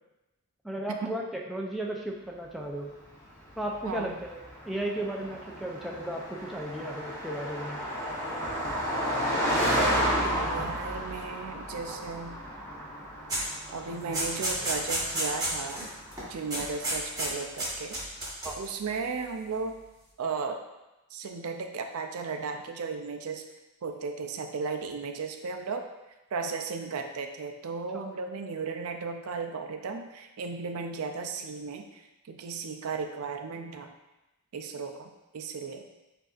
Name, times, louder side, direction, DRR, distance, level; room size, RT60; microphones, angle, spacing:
voice 1, 0.6-2.9 3.6-7.8 18.4-18.6, right 1 dB, ahead, -2 dB, 0.4 m, -35 dB
Car passing by, 3.1-16.8, equal, 15° left, 1.1 m, -32 dB
voice 2, 3.8-4.2 9.5-10.0 10.2-12.4 13.7-15.9 16.3-18.0 18.5-19.8 20.2-20.6 21.1-23.4 23.8-25.8 26.3-32.0 32.3-33.9 34.5-35.8, right 4 dB, 80° right, 5 dB, 0.4 m, -35 dB
sound 1, 13.3-13.5 13.8-15.9 16.1-16.2 16.5-17.3 17.6-18.6, right 1 dB, 15° right, 1.2 m, -31 dB
7.5 x 2.6 x 2.4 m, 1.0 s
head